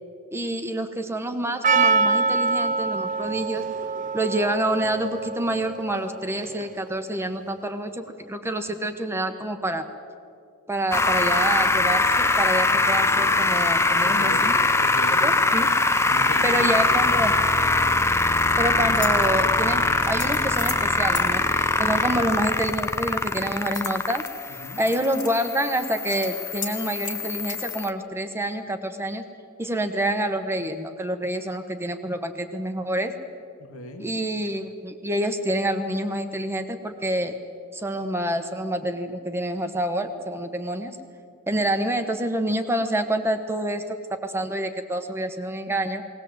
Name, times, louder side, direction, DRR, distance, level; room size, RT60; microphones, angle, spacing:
voice 1, 0.3-3.7 4.1-9.8 10.7-14.5 15.2-15.7 16.4-17.3 18.6-24.3 24.8-29.2 29.6-33.1 34.0-37.4 37.7-41.0 41.5-46.0, right 1 dB, 10° right, 6 dB, 1.2 m, -27 dB
Percussion, 1.6-6.9, right 4 dB, 35° right, 0.8 m, -25 dB
sound 1, 10.9-27.9, left 2 dB, 10° left, 0.6 m, -22 dB
voice 2, 14.0-15.2 16.0-17.1 21.8-22.2 24.6-24.8 33.6-34.1, left 1 dB, 75° left, 4 dB, 2.0 m, -37 dB
sound 2, 18.4-18.5 18.9-19.3 20.0-20.8 21.1-21.3 23.7-24.3 24.6-25.3 25.6-25.7 26.1-26.3 26.6-26.8 27.0-27.8, left 5 dB, 35° left, 2.3 m, -36 dB
21.0 x 18.5 x 8.0 m, 2.3 s
head